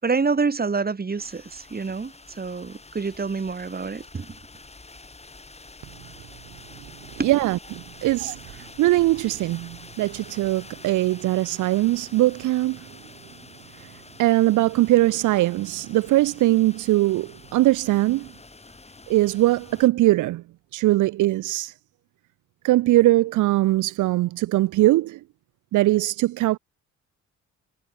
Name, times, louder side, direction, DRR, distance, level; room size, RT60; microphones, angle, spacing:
voice 1, 0.0-4.4 7.2-7.3 8.2-8.3, right 4 dB, 30° right, 6.8 m, -27 dB
sound 1, 1.2-19.9, left 3 dB, 20° left, 7.1 m, -47 dB
voice 2, 7.2-12.8 14.2-18.3 19.1-20.4 20.7-21.7 22.6-25.2 25.7-26.6, right 16 dB, 85° right, 1.2 m, -21 dB
cardioid pair, 90°, 30 cm